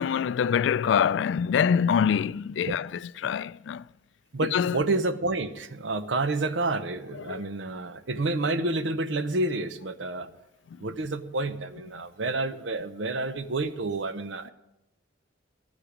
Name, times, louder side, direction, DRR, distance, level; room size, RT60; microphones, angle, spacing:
voice 1, 0.0-3.8 4.4-4.8 7.3-7.4, left 7 dB, 70° left, 0.3 m, -25 dB
voice 2, 4.3-10.3 10.8-14.5, right 2 dB, 75° right, 0.7 m, -29 dB
13.0 x 9.9 x 5.0 m
head